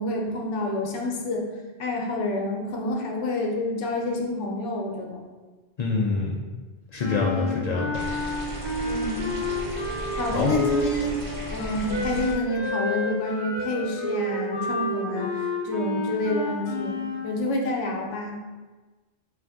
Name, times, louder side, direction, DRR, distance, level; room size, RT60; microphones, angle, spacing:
voice 1, 0.0-1.4 1.8-5.2 7.3-7.8 8.8-9.3 10.1-11.2 11.5-15.3 15.6-18.4, left 2 dB, 85° left, 0 dB, 1.0 m, -28 dB
voice 2, 5.8-6.4 6.9-8.0 10.3-10.5, left 3 dB, 65° left, -2 dB, 0.4 m, -26 dB
Wind instrument woodwind instrument, 7.0-11.1 11.9-17.3, left 2 dB, 15° right, 1.2 m, -30 dB
sound 1, 7.9-12.3, equal, 55° right, 1.2 m, -35 dB
Wind instrument woodwind instrument 2, 8.9-12.3 12.7-16.4, left 2 dB, 45° left, 1.0 m, -44 dB
4.2 x 2.5 x 3.4 m, 1.3 s
omnidirectional pair, 1.2 m